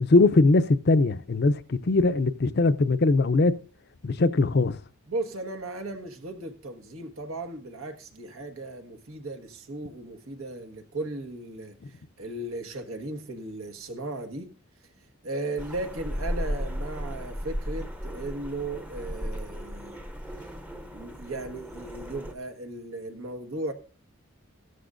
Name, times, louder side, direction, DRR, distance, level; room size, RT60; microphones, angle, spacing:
voice 1, 0.0-3.5 4.0-4.8, left 3 dB, 50° left, 0.5 m, -21 dB
voice 2, 5.1-11.8 12.2-14.5 15.2-20.0 20.9-23.7, right 2 dB, 85° right, 1.4 m, -36 dB
sound 1, 15.6-22.3, equal, 5° right, 0.7 m, -35 dB
15.5 x 13.0 x 2.5 m
head